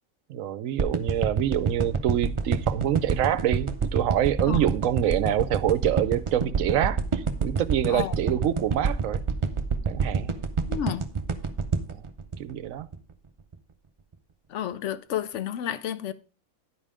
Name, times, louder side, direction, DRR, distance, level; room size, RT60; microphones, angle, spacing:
voice 1, 0.3-9.2 9.9-10.3 11.9-12.0 12.4-12.9, right 11 dB, 70° right, 0.9 m, -26 dB
sound 1, 0.8-13.1 13.5-13.6, right 5 dB, 35° right, 0.5 m, -27 dB
voice 2, 10.7-11.0 14.5-16.1, left 10 dB, 65° left, 0.8 m, -31 dB
10.0 x 5.5 x 4.9 m
omnidirectional pair, 1.5 m